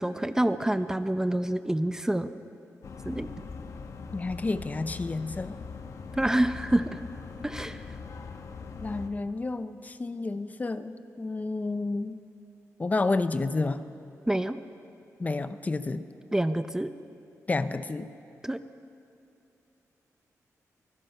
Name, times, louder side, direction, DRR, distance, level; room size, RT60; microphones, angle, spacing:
voice 1, 0.0-2.3 3.0-3.3 6.1-7.0 7.4-7.9 14.3-14.6 16.3-16.9 18.4-18.6, right 1 dB, 10° right, 11 dB, 0.6 m, -27 dB
sound 1, 2.8-9.1, left 5 dB, 60° left, 1.3 m, -41 dB
voice 2, 4.1-5.6 8.8-12.2 12.8-13.8 15.2-16.1 17.5-18.1, left 3 dB, 25° left, 11 dB, 0.7 m, -30 dB
24.0 x 19.5 x 5.6 m, 2.7 s
wide cardioid pair, 115°, 6 cm